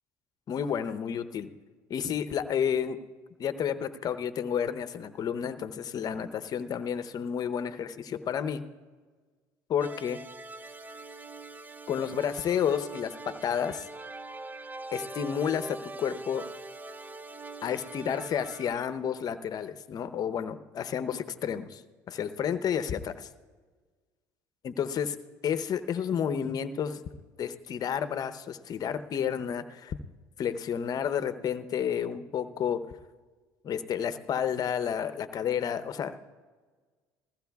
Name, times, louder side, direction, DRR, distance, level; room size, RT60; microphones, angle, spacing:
voice 1, 0.5-1.5 1.9-3.0 3.4-8.6 9.7-10.2 11.9-13.9 14.9-16.5 17.6-21.8 22.1-23.3 24.6-25.2 25.4-27.0 27.4-30.0 30.4-32.9 33.6-36.3, left 8 dB, 50° left, 12 dB, 0.8 m, -31 dB
sound 1, 9.8-18.7, right 2 dB, 20° right, 0.6 m, -43 dB
20.5 x 15.0 x 2.3 m, 1.4 s
supercardioid pair, 75°, 8 cm